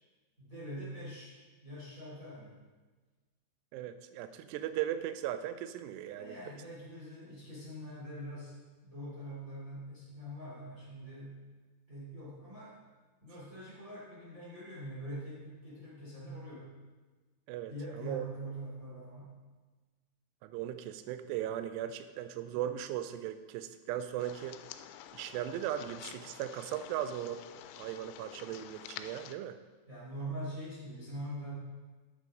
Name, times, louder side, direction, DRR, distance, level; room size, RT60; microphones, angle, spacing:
voice 1, 0.4-1.4 1.6-2.6 6.1-11.4 11.9-12.8 13.2-16.7 17.7-19.4 29.9-31.5, right 1 dB, 20° right, -8 dB, 3.4 m, -43 dB
voice 2, 3.7-6.4 17.5-18.2 20.4-24.6 25.1-27.4 27.8-29.6, right 11 dB, 85° right, 11 dB, 2.4 m, -38 dB
sound 1, 24.2-29.4, left 11 dB, 90° left, 3.0 m, -49 dB
10.5 x 8.4 x 3.9 m, 1.3 s
omnidirectional pair, 5.3 m